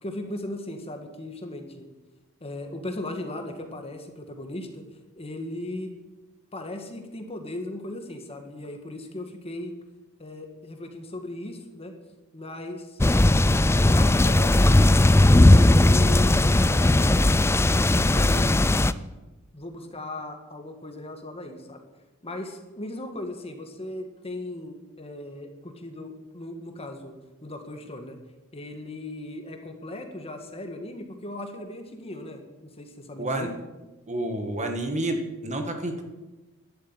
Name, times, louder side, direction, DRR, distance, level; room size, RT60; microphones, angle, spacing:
voice 1, 0.0-1.9 2.4-4.8 5.2-5.9 6.5-9.7 10.2-12.0 12.3-13.0 13.4-15.5 15.8-17.2 18.2-18.5 19.5-21.8 22.2-27.1 27.4-28.2 28.5-32.4 32.8-33.5, left 1 dB, 25° left, 5 dB, 1.8 m, -37 dB
sound 1, 13.0-18.9, left 1 dB, 10° left, 0.4 m, -18 dB
voice 2, 33.2-33.5 34.1-36.0, right 1 dB, 30° right, 5 dB, 1.9 m, -29 dB
12.0 x 11.5 x 9.0 m, 1.1 s
head